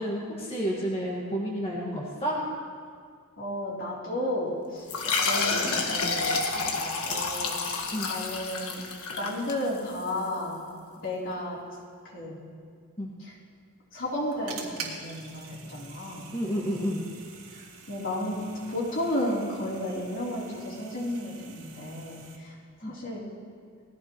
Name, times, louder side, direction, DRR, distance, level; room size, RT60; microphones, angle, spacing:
voice 1, 0.0-2.4 7.9-8.1 13.0-13.1 16.3-17.0 22.8-22.9, equal, 30° left, -4 dB, 1.8 m, -30 dB
voice 2, 3.4-7.6 8.1-8.8 9.1-10.6 11.0-11.6 12.0-12.4 13.2-13.3 13.9-16.2 17.5-23.2, left 1 dB, 60° left, -6 dB, 3.6 m, -33 dB
sound 1, 4.9-10.0, left 4 dB, 90° left, 1.5 m, -29 dB
sound 2, 13.9-22.4, right 5 dB, 80° right, 2.3 m, -45 dB
19.5 x 15.0 x 3.1 m, 2.1 s
head